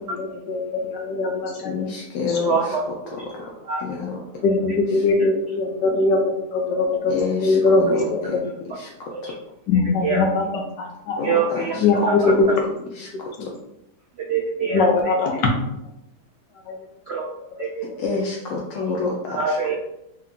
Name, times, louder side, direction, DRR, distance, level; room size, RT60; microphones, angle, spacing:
voice 1, 0.1-1.7 4.4-7.1 7.4-8.4 9.7-11.4 11.8-12.5 13.4-13.5 14.7-15.5 16.7-16.8, left 3 dB, 85° left, 1 dB, 1.5 m, -21 dB
voice 2, 1.6-3.5 3.8-4.2 4.9-5.0 7.1-9.3 11.2-12.1 12.9-13.5 17.8-19.6, left 4 dB, 65° left, -1 dB, 0.8 m, -29 dB
voice 3, 2.4-2.8 3.7-3.8 8.0-8.1 9.1-9.3 10.0-10.3 11.2-11.8 12.0-12.3 14.3-15.1 17.1-17.3 17.6-17.8 19.3-19.7, right 4 dB, 75° right, -2 dB, 0.6 m, -24 dB
3.6 x 2.9 x 3.6 m, 0.86 s
omnidirectional pair, 1.8 m